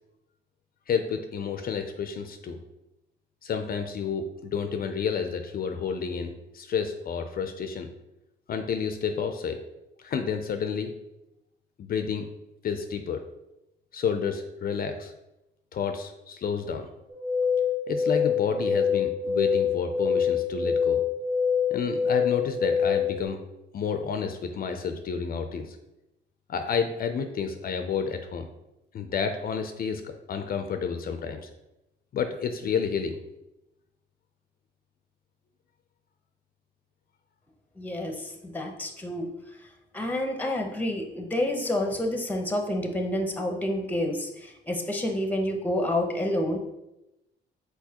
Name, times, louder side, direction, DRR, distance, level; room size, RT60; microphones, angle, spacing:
voice 1, 0.9-2.6 3.4-7.9 8.5-9.6 10.0-10.9 11.8-12.3 12.6-13.2 13.9-15.1 15.7-16.9 17.9-21.0 21.7-23.4 23.7-25.8 26.5-28.5 28.9-31.5 32.1-33.2, left 6 dB, 50° left, 7 dB, 0.4 m, -30 dB
sound 1, 17.1-23.3, left 6 dB, 25° right, 1.1 m, -25 dB
voice 2, 37.8-39.3 39.9-46.6, left 1 dB, 10° left, 3 dB, 0.7 m, -29 dB
4.6 x 4.1 x 2.8 m, 0.92 s
cardioid pair, 90°, 20 cm